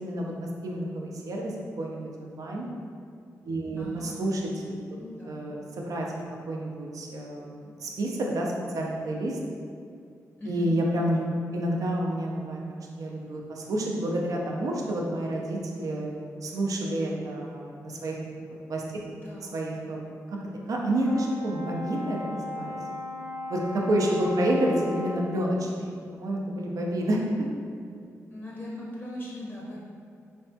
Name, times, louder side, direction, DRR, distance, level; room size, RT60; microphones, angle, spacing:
voice 1, 0.0-2.7 3.4-5.0 5.2-9.4 10.5-12.6 13.0-16.1 16.4-18.2 18.5-18.8 19.5-20.0 20.3-20.4 20.7-22.8 23.5-27.2 27.9-28.1, right 1 dB, 65° right, -1 dB, 0.4 m, -29 dB
voice 2, 3.8-4.2 4.9-5.4 10.4-10.7 19.1-19.6 28.3-29.8, left 1 dB, 25° left, -5 dB, 0.6 m, -39 dB
Brass instrument, 20.9-25.3, left 1 dB, 40° right, 0.8 m, -37 dB
3.3 x 2.2 x 2.7 m, 2.2 s
cardioid pair, 65°, 6 cm